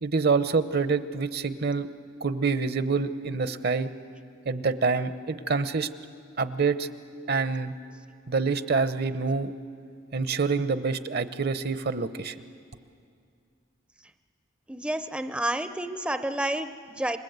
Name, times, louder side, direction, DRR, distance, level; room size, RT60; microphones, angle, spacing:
voice 1, 0.0-1.9 2.2-3.9 4.4-5.9 6.4-6.9 7.3-7.8 8.3-9.5 10.1-12.4, right 4 dB, 55° right, 12 dB, 0.8 m, -26 dB
voice 2, 14.7-17.2, right 1 dB, 5° right, 9 dB, 0.5 m, -30 dB
27.5 x 21.5 x 8.0 m, 2.3 s
head